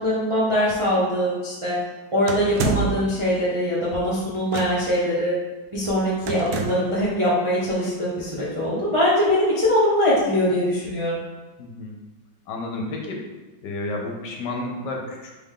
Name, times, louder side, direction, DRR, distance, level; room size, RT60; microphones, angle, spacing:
voice 1, 0.0-1.8 2.1-5.3 5.7-11.2, equal, 35° right, -8 dB, 0.5 m, -22 dB
sound 1, 2.3-3.1 4.5-5.0 6.3-7.0, right 7 dB, 75° right, 0.8 m, -28 dB
voice 2, 11.6-11.9 12.5-13.2 13.6-15.4, left 2 dB, 70° left, 0 dB, 1.2 m, -31 dB
3.8 x 3.5 x 3.6 m, 1.2 s
omnidirectional pair, 2.1 m